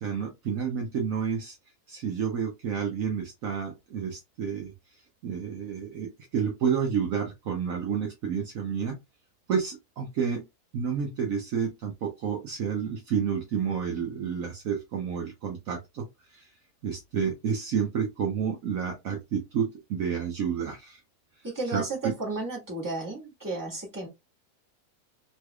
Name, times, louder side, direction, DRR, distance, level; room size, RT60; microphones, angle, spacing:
voice 1, 0.0-1.6 1.9-4.7 5.2-8.9 9.5-10.4 10.7-16.0 16.3-16.5 16.8-21.0 21.7-22.1, right 7 dB, 65° right, 1.0 m, -30 dB
voice 2, 21.4-24.1, right 3 dB, 10° right, 1.5 m, -33 dB
3.2 x 3.2 x 2.2 m
omnidirectional pair, 1.7 m